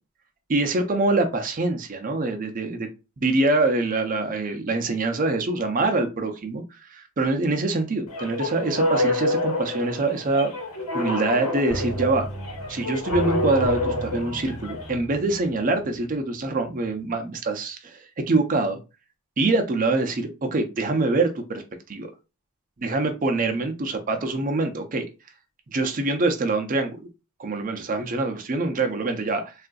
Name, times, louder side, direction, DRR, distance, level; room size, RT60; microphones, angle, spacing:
voice 1, 0.5-2.9 3.2-6.6 6.9-10.5 10.9-12.3 12.7-18.8 19.4-21.6 21.9-22.1 22.8-25.1 25.7-27.0 27.4-29.5, right 2 dB, 35° right, 0.5 m, -24 dB
sound 1, 8.1-14.9, left 1 dB, 80° left, 1.1 m, -28 dB
sound 2, 11.7-16.4 16.7-16.8, equal, 25° left, 0.5 m, -35 dB
3.6 x 2.4 x 2.3 m
head